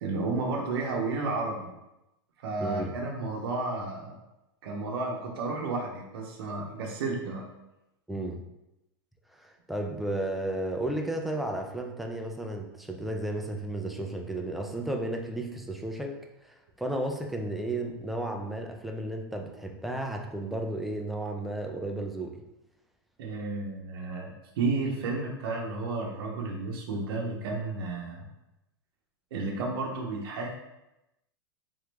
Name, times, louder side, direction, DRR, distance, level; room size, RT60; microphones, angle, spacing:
voice 1, 0.0-1.7 2.4-4.2 4.6-7.4 23.2-28.2 29.3-30.5, right 3 dB, 75° right, 0 dB, 0.8 m, -32 dB
voice 2, 2.6-2.9 8.1-8.4 9.3-22.4, right 1 dB, ahead, 2 dB, 0.4 m, -33 dB
3.6 x 3.0 x 3.3 m, 0.92 s
supercardioid pair, 135°, 13 cm